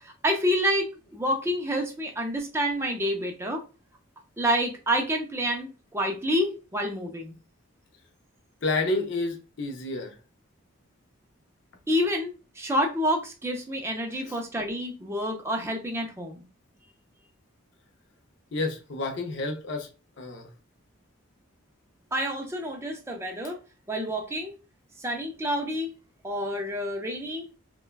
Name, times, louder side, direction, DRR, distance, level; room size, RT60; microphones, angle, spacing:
voice 1, 0.0-3.6 4.4-7.3 11.9-16.4 22.1-23.6 23.9-24.5 25.0-25.9 26.2-27.5, equal, 10° right, 0.3 m, -28 dB
voice 2, 8.6-10.2 14.2-14.4 18.5-19.9 20.2-20.5, left 2 dB, 55° left, 0.5 m, -30 dB
3.3 x 2.2 x 2.2 m
head